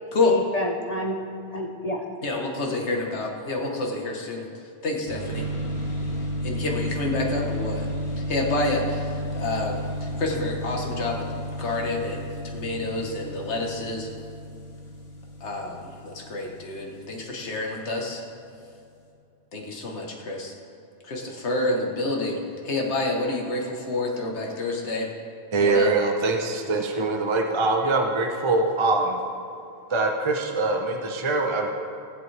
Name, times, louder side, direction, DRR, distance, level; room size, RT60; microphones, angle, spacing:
voice 1, 0.0-2.0, equal, 40° left, 0 dB, 0.8 m, -30 dB
voice 2, 2.2-4.5 4.8-5.5 6.4-7.9 8.3-11.3 11.6-14.1 15.4-18.2 19.5-20.5 21.0-25.1 25.6-25.9, left 2 dB, 90° left, 0 dB, 1.5 m, -28 dB
sound 1, 5.1-17.5, equal, 70° left, 1.8 m, -32 dB
voice 3, 25.5-29.2 29.9-31.7, right 3 dB, 30° right, 2 dB, 0.8 m, -23 dB
19.0 x 7.9 x 3.3 m, 2.5 s
omnidirectional pair, 1.1 m